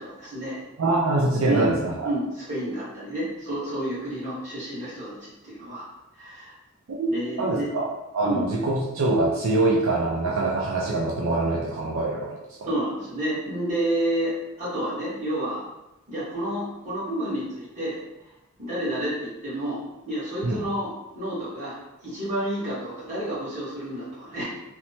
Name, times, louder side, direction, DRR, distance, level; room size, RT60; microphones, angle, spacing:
voice 1, 0.0-0.6 1.5-5.9 6.2-6.5 7.1-7.7 8.2-8.4 12.6-14.3 14.6-15.6 16.1-18.0 18.6-24.4, right 1 dB, 35° right, -10 dB, 1.4 m, -30 dB
voice 2, 0.8-2.1 6.9-7.1 7.4-7.9 8.1-12.7 20.4-20.6, right 2 dB, 75° right, -3 dB, 0.4 m, -24 dB
3.1 x 2.0 x 2.7 m, 0.94 s
head